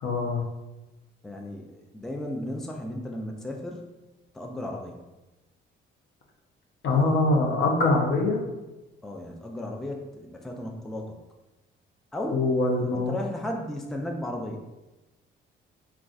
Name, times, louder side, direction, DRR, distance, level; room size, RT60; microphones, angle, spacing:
voice 1, 0.0-0.4 6.8-8.4 12.3-13.1, left 2 dB, 70° left, 1 dB, 0.6 m, -23 dB
voice 2, 1.2-3.9 4.3-5.1 9.0-11.2 12.1-12.4 12.8-14.6, left 1 dB, ahead, 1 dB, 0.4 m, -35 dB
3.7 x 2.3 x 2.4 m, 1.0 s
cardioid pair, 90°, 20 cm